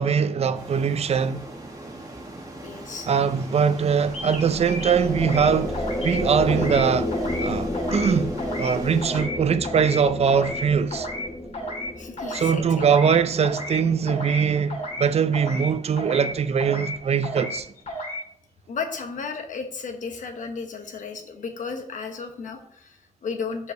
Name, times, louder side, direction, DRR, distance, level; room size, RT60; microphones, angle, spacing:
voice 1, 0.0-1.4 3.1-5.8 6.0-7.1 7.4-11.1 12.3-17.7, right 6 dB, 55° right, 0.5 m, -22 dB
sound 1, 0.5-9.2, right 2 dB, 25° right, 1.2 m, -40 dB
voice 2, 2.6-3.1 12.0-12.8 18.7-23.7, left 5 dB, 75° left, 1.1 m, -34 dB
sound 2, 3.9-15.4, left 1 dB, 10° left, 1.1 m, -32 dB
sound 3, 4.1-4.4 4.7-5.5 5.7-6.2 6.5-6.8 7.1-7.5 7.7-8.1 8.4-8.7 9.0-9.4 9.6-10.0 10.3-10.6 10.9-11.3 11.5-11.9 12.2-12.5 12.8-13.2 13.4-13.8 14.1-14.4 14.7-15.1 15.3-15.7 16.0-16.3 16.6-17.0 17.2-17.6 17.9-18.2, equal, 55° left, 2.5 m, -32 dB
5.3 x 4.7 x 6.4 m
wide cardioid pair, 130°, 13 cm